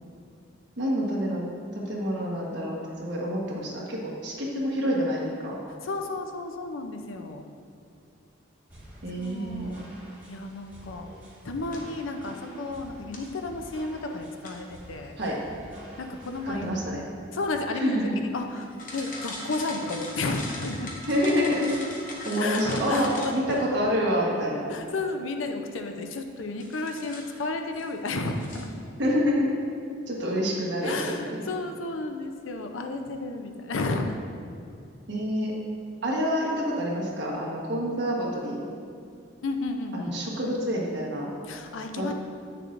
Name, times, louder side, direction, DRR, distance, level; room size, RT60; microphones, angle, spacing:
voice 1, 0.8-1.4 1.7-5.6 9.0-9.7 11.0-11.1 11.6-11.8 15.2-15.4 16.4-17.0 17.7-18.2 21.1-21.8 22.2-24.7 29.0-29.5 30.1-31.4 35.1-35.5 36.0-38.6 39.9-41.3 42.0-42.1, equal, 60° right, -3 dB, 1.3 m, -27 dB
voice 2, 5.8-7.5 9.2-9.9 10.3-11.1 11.4-15.2 16.0-16.7 17.3-20.9 22.4-23.7 24.7-28.7 30.8-34.2 39.4-40.1 41.5-42.1, left 3 dB, 75° left, 5 dB, 0.5 m, -32 dB
sound 1, 8.7-16.7, equal, 10° right, 1.5 m, -48 dB
sound 2, 11.6-12.0 13.1-13.4 14.4-14.8 16.5-17.0 17.5-17.7 18.1-23.7 26.6-27.4 27.7-27.9 28.2-28.6, left 2 dB, 40° left, 0.8 m, -40 dB
8.3 x 6.6 x 2.5 m, 2.4 s
head